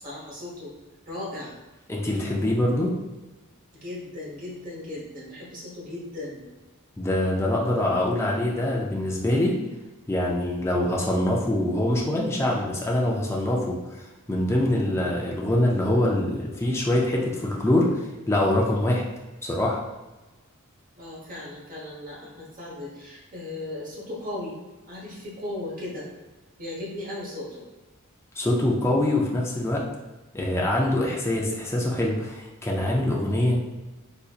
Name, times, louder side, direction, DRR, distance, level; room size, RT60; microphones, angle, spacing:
voice 1, 0.0-0.7 1.0-1.6 3.7-6.4 21.0-24.6 24.9-26.1 26.6-27.6, left 1 dB, 40° right, -5 dB, 1.0 m, -36 dB
voice 2, 1.9-2.9 7.0-9.6 10.1-14.0 14.3-19.0 19.4-19.8 28.4-29.8 30.3-33.6, left 1 dB, 10° left, -3 dB, 0.4 m, -24 dB
3.9 x 2.7 x 2.4 m, 1.1 s
head